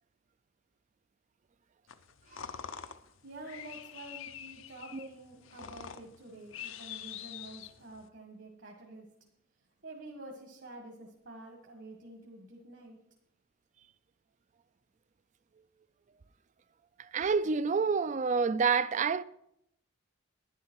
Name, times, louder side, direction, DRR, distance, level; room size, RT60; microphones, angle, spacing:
sound 1, 1.9-8.1, left 8 dB, 70° left, 0.7 m, -46 dB
voice 1, 3.2-9.1 9.8-13.0, right 2 dB, 60° right, 1.8 m, -48 dB
voice 2, 17.1-19.2, right 5 dB, 35° right, 0.4 m, -28 dB
11.0 x 10.0 x 4.7 m
head